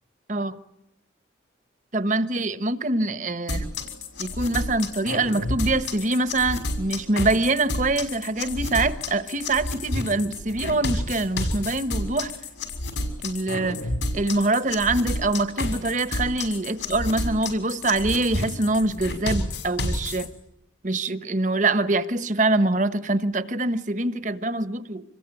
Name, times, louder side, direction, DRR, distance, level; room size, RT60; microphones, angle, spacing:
voice 1, 1.9-3.8 4.2-12.4 13.2-13.8 14.1-20.3 20.8-25.0, right 2 dB, 40° right, 1.3 m, -24 dB
sound 1, 3.5-20.3, left 2 dB, 80° left, 6.1 m, -30 dB
27.0 x 22.0 x 9.8 m
head